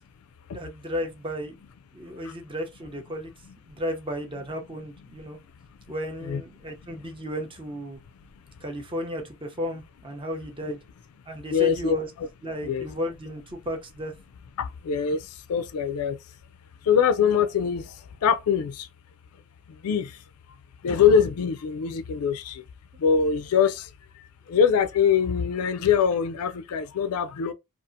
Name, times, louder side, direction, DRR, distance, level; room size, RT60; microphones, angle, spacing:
voice 1, 0.5-1.6 1.9-3.3 3.7-5.4 5.9-8.0 8.6-10.8 11.3-12.1 12.4-14.1, equal, 25° right, 0.6 m, -34 dB
voice 2, 11.5-12.3 12.6-12.9 14.6-15.2 15.5-16.2 16.9-17.9 18.2-18.9 19.8-20.1 20.8-22.6 23.0-23.9 24.5-27.5, left 7 dB, 70° left, 0.3 m, -23 dB
2.7 x 2.4 x 2.5 m
head